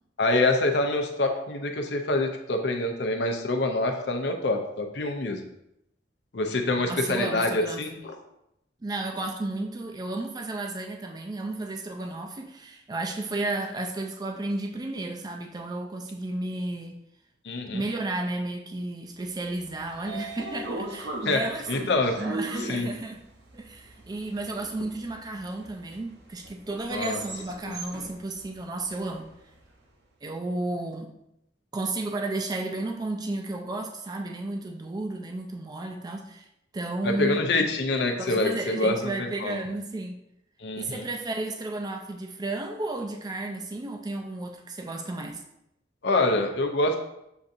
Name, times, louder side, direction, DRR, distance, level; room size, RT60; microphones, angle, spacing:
voice 1, 0.2-5.5 6.3-8.2 17.4-17.8 21.3-21.4 21.7-22.2 22.6-22.9 26.9-27.2 27.7-27.8 37.0-39.6 40.6-41.0 46.0-47.0, left 2 dB, 70° left, 4 dB, 0.6 m, -26 dB
voice 2, 6.9-7.9 8.8-17.0 17.7-21.7 22.2-23.2 23.5-29.3 30.2-31.1 31.7-36.5 36.7-37.4 38.2-40.1 40.8-45.4, right 2 dB, 20° right, 3 dB, 0.4 m, -33 dB
Train / Sliding door, 19.5-29.6, right 2 dB, 70° right, 0.8 m, -40 dB
6.9 x 2.7 x 2.5 m, 0.82 s
head